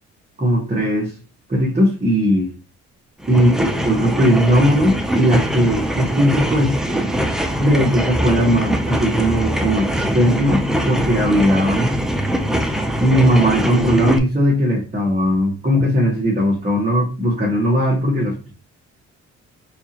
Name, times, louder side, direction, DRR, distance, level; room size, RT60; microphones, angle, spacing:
voice 1, 0.4-1.1 1.5-2.5 3.3-3.5 3.8-6.7 7.6-12.0 13.0-18.5, equal, 25° right, -4 dB, 1.1 m, -18 dB
sound 1, 3.2-14.2, equal, ahead, 0.5 m, -22 dB
4.5 x 2.4 x 2.9 m, 0.33 s
cardioid pair, 90°, 30 cm